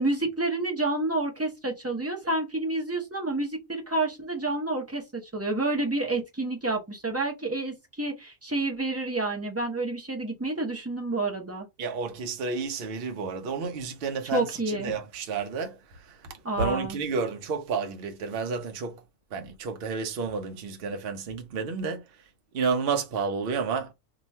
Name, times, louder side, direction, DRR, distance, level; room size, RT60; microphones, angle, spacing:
voice 1, 0.0-11.7 14.3-14.9 16.4-17.0, right 2 dB, 20° right, 0.4 m, -29 dB
voice 2, 11.8-19.0 19.3-22.2 22.5-23.9, right 5 dB, 55° right, 0.7 m, -31 dB
2.9 x 2.3 x 4.1 m
omnidirectional pair, 1.5 m